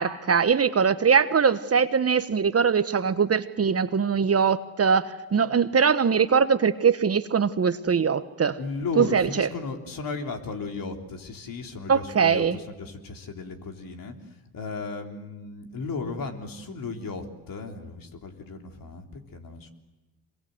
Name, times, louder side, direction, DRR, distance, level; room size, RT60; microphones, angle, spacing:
voice 1, 0.0-8.6 9.0-9.5 11.9-12.6, right 6 dB, 35° right, 12 dB, 1.2 m, -22 dB
voice 2, 8.6-14.1 14.5-19.7, left 4 dB, 55° left, 3 dB, 3.5 m, -35 dB
26.0 x 22.0 x 8.1 m, 1.1 s
hypercardioid pair, 55°, 41 cm